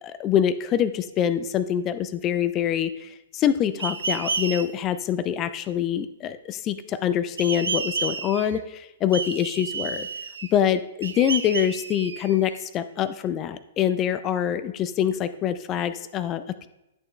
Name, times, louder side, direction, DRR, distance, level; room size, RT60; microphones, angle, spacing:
voice 1, 0.0-10.1 10.5-16.7, left 9 dB, 25° left, 13 dB, 0.5 m, -25 dB
sound 1, 3.8-4.6 7.4-8.6 9.1-10.6 11.0-12.6, right 5 dB, 70° right, 0.7 m, -31 dB
10.5 x 6.8 x 3.2 m, 0.95 s
figure-of-eight pair, 110°, 0 cm